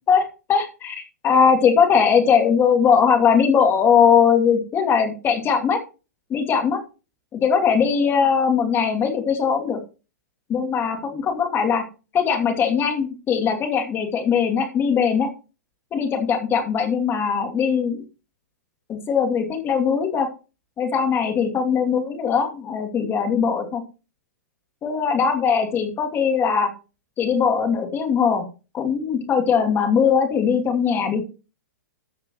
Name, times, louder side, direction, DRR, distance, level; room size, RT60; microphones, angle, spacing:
voice 1, 0.1-5.8 6.3-6.8 7.3-9.8 10.5-11.8 12.1-15.3 15.9-18.0 18.9-20.3 20.8-23.8 24.8-26.7 27.2-28.4 28.7-31.2, left 6 dB, 25° left, 4 dB, 2.6 m, -20 dB
14.0 x 6.6 x 3.1 m, 0.31 s
figure-of-eight pair, 115°, 9 cm